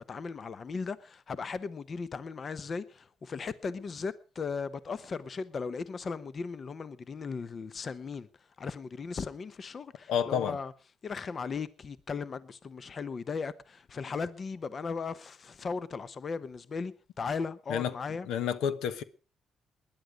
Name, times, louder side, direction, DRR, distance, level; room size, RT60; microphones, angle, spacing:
voice 1, 0.0-8.3 8.6-10.7 11.0-18.3, left 5 dB, 45° left, 0.9 m, -37 dB
voice 2, 10.1-10.6 17.7-17.9 18.3-19.0, left 8 dB, 85° left, 1.1 m, -29 dB
20.0 x 10.5 x 5.1 m
cardioid pair, 90°, 0 cm